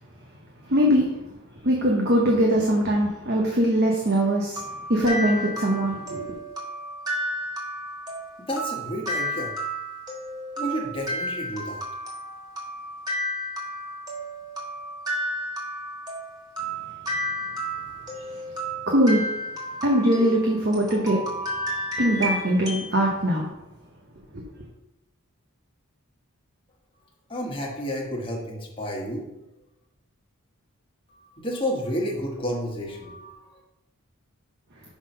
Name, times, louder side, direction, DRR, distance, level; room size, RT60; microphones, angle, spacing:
voice 1, 0.6-1.1 1.6-6.4 18.1-18.4 18.9-19.3 19.8-21.2 22.0-23.4, equal, 45° right, -2 dB, 1.1 m, -22 dB
sound 1, 4.1-22.9, equal, 20° right, 1.6 m, -32 dB
voice 2, 8.4-9.5 10.6-11.8 27.3-29.2 31.1-33.6, equal, 25° left, -2 dB, 1.4 m, -31 dB
6.0 x 5.8 x 5.4 m, 0.94 s
head